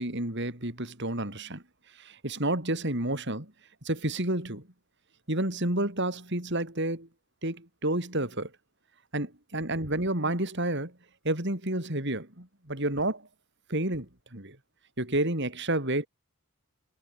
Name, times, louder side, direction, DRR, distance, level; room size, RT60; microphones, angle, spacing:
voice 1, 0.0-1.6 2.0-3.5 3.8-4.6 5.3-7.1 7.4-8.5 9.1-10.9 11.2-13.3 13.7-14.6 15.0-16.1, right 1 dB, 50° right, 4.9 m, -30 dB
head